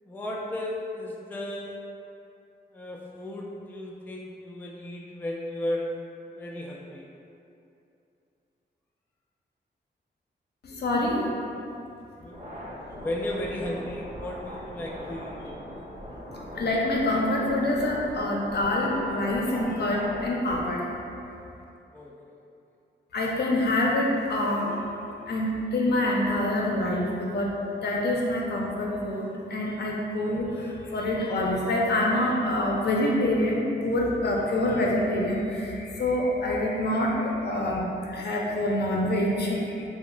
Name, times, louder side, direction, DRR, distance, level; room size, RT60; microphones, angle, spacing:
voice 1, 0.0-1.8 2.7-5.9 6.3-7.1 12.2-12.4 13.0-15.4 21.9-22.1, left 1 dB, 10° left, -3 dB, 0.3 m, -34 dB
voice 2, 10.7-11.2 16.6-20.8 23.1-24.8 25.3-27.1 27.3-27.5 27.8-29.2 29.5-30.5 30.9-35.6 36.0-37.1 37.4-39.6, left 1 dB, 60° left, -3 dB, 0.5 m, -26 dB
sound 1, 12.3-20.6, equal, 30° right, 0.8 m, -40 dB
2.4 x 2.1 x 3.7 m, 2.7 s
cardioid pair, 70°, 19 cm